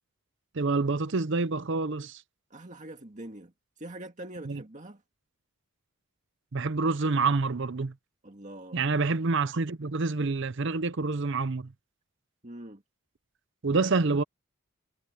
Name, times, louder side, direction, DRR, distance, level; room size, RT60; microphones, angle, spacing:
voice 1, 0.5-2.2 4.5-4.6 6.5-7.9 8.7-11.7 13.6-14.2, right 3 dB, 55° right, 0.7 m, -27 dB
voice 2, 2.5-5.0 8.2-8.8 12.4-12.8, right 1 dB, 35° right, 2.0 m, -44 dB
head